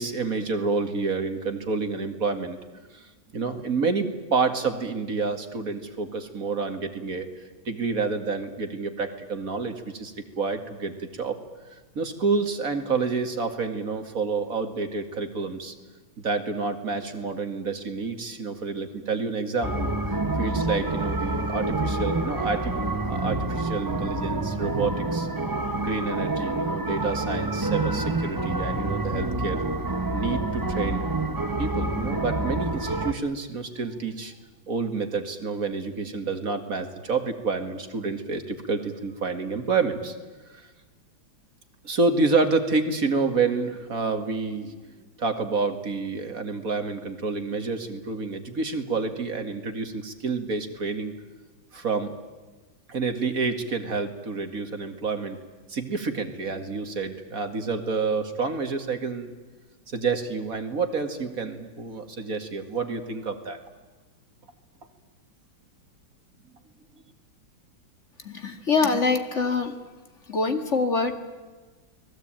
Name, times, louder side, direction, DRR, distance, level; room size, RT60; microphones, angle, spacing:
voice 1, 0.0-2.6 2.9-7.3 7.7-11.4 12.0-15.7 16.2-19.9 20.4-25.3 25.8-29.6 30.1-31.1 31.6-34.3 34.7-40.1 40.5-40.7 41.8-44.8 45.2-51.1 51.7-52.1 52.9-55.4 55.7-59.3 59.9-63.6, right 4 dB, 45° right, 6 dB, 2.5 m, -28 dB
sound 1, 19.6-33.1, right 2 dB, 15° right, 0.8 m, -27 dB
voice 2, 68.2-69.8 70.3-71.1, left 4 dB, 35° left, 7 dB, 2.2 m, -24 dB
30.0 x 20.5 x 9.0 m, 1.3 s
omnidirectional pair, 2.2 m